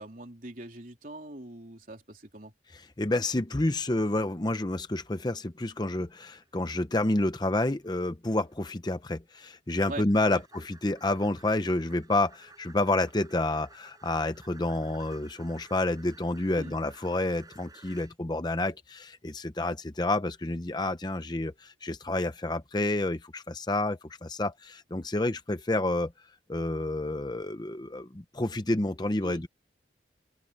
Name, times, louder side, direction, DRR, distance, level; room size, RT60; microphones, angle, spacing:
voice 1, 0.0-2.5 9.9-10.4 16.6-16.8 29.2-29.4, right 2 dB, 45° right, 3.8 m, -42 dB
voice 2, 3.0-26.1 26.5-29.5, left 2 dB, 25° left, 0.7 m, -29 dB
metallic lid of pan rolling, 4.4-4.6 4.9-5.3 5.7-6.0 6.3-6.6 7.0-7.2 7.8-8.0 8.4-8.6 10.0-18.2, right 4 dB, 20° right, 6.2 m, -56 dB
open air
head